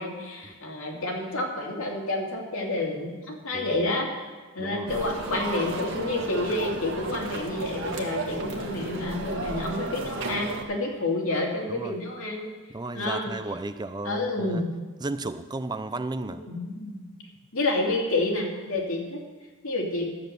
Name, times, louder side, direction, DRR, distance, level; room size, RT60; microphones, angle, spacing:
voice 1, 0.0-4.1 4.5-12.5 12.9-13.3 14.0-14.6 16.5-17.0 17.5-19.2 19.6-20.0, left 2 dB, 80° left, 0 dB, 2.6 m, -29 dB
voice 2, 4.6-4.9 11.7-12.0 12.7-14.6 15.0-16.4, right 2 dB, 20° right, 11 dB, 0.4 m, -34 dB
sound 1, 4.9-10.6, right 3 dB, 60° right, 1.6 m, -33 dB
13.0 x 8.1 x 6.7 m, 1.3 s
head